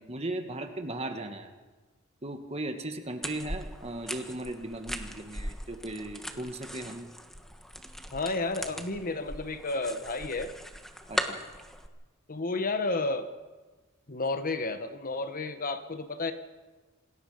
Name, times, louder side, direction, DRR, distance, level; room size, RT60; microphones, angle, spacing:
voice 1, 0.0-1.5 2.2-7.1 11.1-11.4, right 1 dB, 30° right, 5 dB, 2.0 m, -37 dB
sound 1, 3.2-11.9, equal, ahead, 1.5 m, -39 dB
voice 2, 8.1-10.5 12.3-13.3 14.1-16.3, left 3 dB, 40° left, 9 dB, 1.3 m, -31 dB
27.5 x 19.5 x 5.2 m, 1.2 s
head